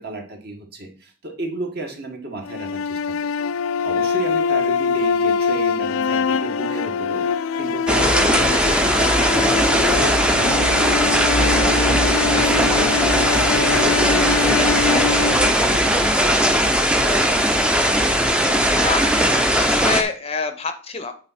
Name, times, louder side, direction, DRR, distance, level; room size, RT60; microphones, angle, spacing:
voice 1, 0.0-3.1 3.7-16.6 17.2-17.4, right 2 dB, 45° right, 2 dB, 1.7 m, -33 dB
sound 1, 2.4-16.6, left 5 dB, 70° left, 0.3 m, -23 dB
sound 2, 7.9-20.0, equal, 5° right, 0.6 m, -18 dB
voice 2, 17.0-17.3 18.8-21.1, left 4 dB, 30° left, 8 dB, 0.7 m, -27 dB
8.7 x 4.1 x 4.2 m, 0.40 s
head